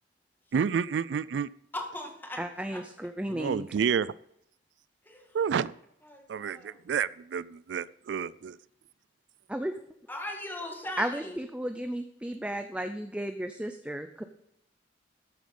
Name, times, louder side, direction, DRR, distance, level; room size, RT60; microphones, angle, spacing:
voice 1, 0.5-1.5 3.3-4.1 5.3-5.7 6.3-8.6, right 7 dB, 75° right, 19 dB, 0.3 m, -29 dB
voice 2, 1.7-2.4 2.7-2.8 5.1-5.3 6.1-6.9 10.1-11.4, left 1 dB, 10° left, 2 dB, 1.9 m, -39 dB
voice 3, 2.4-3.7 9.5-9.7 11.0-14.2, right 1 dB, 5° right, 7 dB, 0.5 m, -34 dB
13.5 x 7.6 x 5.4 m, 0.73 s
head